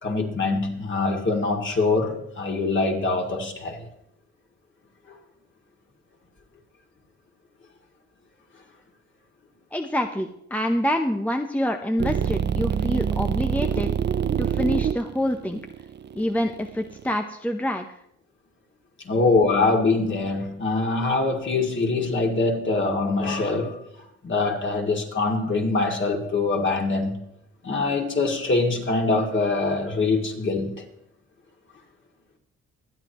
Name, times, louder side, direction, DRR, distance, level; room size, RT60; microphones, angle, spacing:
voice 1, 0.0-3.8 19.0-23.8 24.2-27.2 27.6-30.8, left 3 dB, 40° left, 2.6 m, -24 dB
voice 2, 9.7-13.9 14.4-15.6 16.2-17.9, equal, 5° left, 0.7 m, -26 dB
sound 1, 12.0-17.1, right 8 dB, 35° right, 0.5 m, -26 dB
24.5 x 9.1 x 3.0 m
cardioid pair, 90°, 30 cm